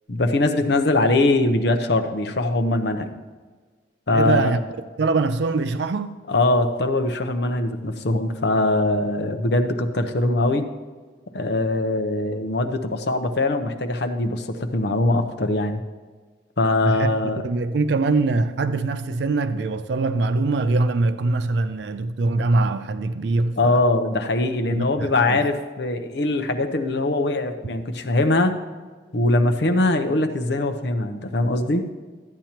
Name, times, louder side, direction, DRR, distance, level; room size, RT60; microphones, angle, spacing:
voice 1, 0.1-3.1 4.1-4.5 6.3-10.7 11.3-15.8 16.6-17.4 23.6-28.6 29.1-31.9, left 2 dB, 65° left, 0.7 m, -22 dB
voice 2, 4.1-4.6 5.0-6.2 16.8-17.1 17.4-23.8 24.7-25.4, right 3 dB, 70° right, 0.4 m, -23 dB
13.0 x 8.9 x 2.9 m
head